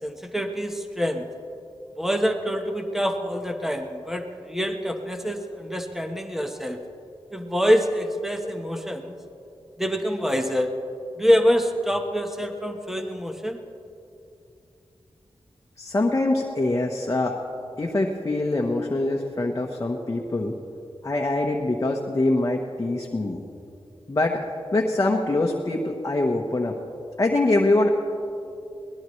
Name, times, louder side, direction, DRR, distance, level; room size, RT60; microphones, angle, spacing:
voice 1, 0.0-1.2 2.0-6.8 7.3-9.2 9.8-10.7 11.2-13.6, equal, 5° right, 4 dB, 1.2 m, -25 dB
voice 2, 15.8-17.4 17.8-20.6 21.0-23.5 24.1-26.8 27.2-27.9, left 2 dB, 30° left, 0 dB, 1.2 m, -24 dB
23.0 x 19.0 x 3.2 m, 2.7 s
wide cardioid pair, 100°, 10 cm